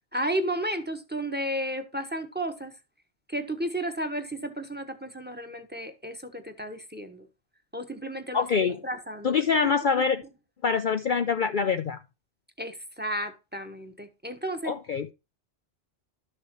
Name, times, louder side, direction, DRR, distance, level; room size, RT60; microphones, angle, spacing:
voice 1, 0.1-2.7 3.3-7.3 7.7-9.7 10.0-10.1 12.6-14.7, right 1 dB, 10° right, 1.3 m, -33 dB
voice 2, 8.3-8.8 9.2-10.2 10.6-12.0 14.6-15.1, left 6 dB, 50° left, 0.7 m, -25 dB
12.5 x 6.7 x 3.1 m
omnidirectional pair, 1.2 m